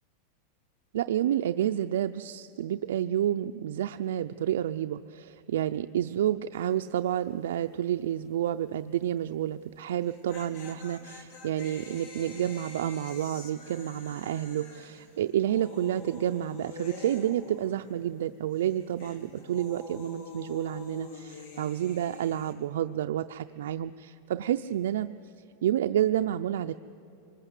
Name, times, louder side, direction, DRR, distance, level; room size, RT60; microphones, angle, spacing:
voice 1, 0.9-25.1 25.6-26.7, right 11 dB, 80° right, 7 dB, 0.5 m, -29 dB
sound 1, 6.5-6.9 7.1-7.2 9.9-18.2 18.5-22.5, left 3 dB, 45° left, 2.8 m, -46 dB
25.5 x 20.5 x 8.3 m, 2.9 s
supercardioid pair, 165°, 0 cm